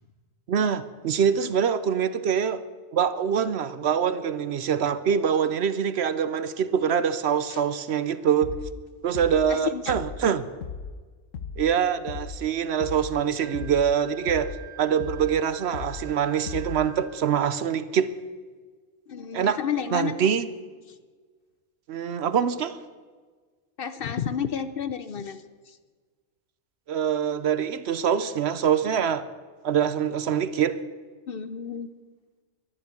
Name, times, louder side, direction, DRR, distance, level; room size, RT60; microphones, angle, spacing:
voice 1, 0.5-2.6 2.9-8.5 9.0-10.5 11.6-14.5 14.8-18.1 19.3-19.6 19.9-20.5 21.9-22.8 26.9-29.3 29.6-30.8, right 8 dB, 65° right, 14 dB, 0.9 m, -24 dB
sound 1, 8.4-8.8 9.1-9.5 9.9-10.3 10.6-11.0 11.3-11.7 12.1-12.4 12.8-13.2 13.5-13.9 14.3-14.6 15.0-15.4 15.7-16.1 16.5-16.9, left 5 dB, 85° left, 1.2 m, -36 dB
voice 2, 9.5-9.9 19.1-20.1 23.8-25.4 31.3-31.9, left 8 dB, 55° left, 12 dB, 0.8 m, -31 dB
Wind instrument woodwind instrument, 13.4-17.2, right 12 dB, 45° right, 1.9 m, -48 dB
12.0 x 11.5 x 8.4 m, 1.5 s
omnidirectional pair, 1.3 m